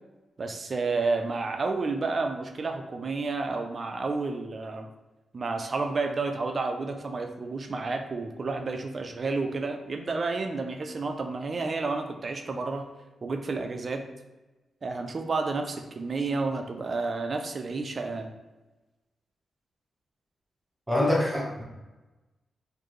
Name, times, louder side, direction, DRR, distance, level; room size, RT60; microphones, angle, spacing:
voice 1, 0.4-4.9 5.3-12.9 13.2-14.0 14.8-18.3, right 3 dB, 40° right, 6 dB, 0.4 m, -30 dB
voice 2, 20.9-21.6, left 1 dB, 10° right, -2 dB, 0.9 m, -25 dB
4.4 x 2.6 x 3.0 m, 1.1 s
wide cardioid pair, 120°, 0 cm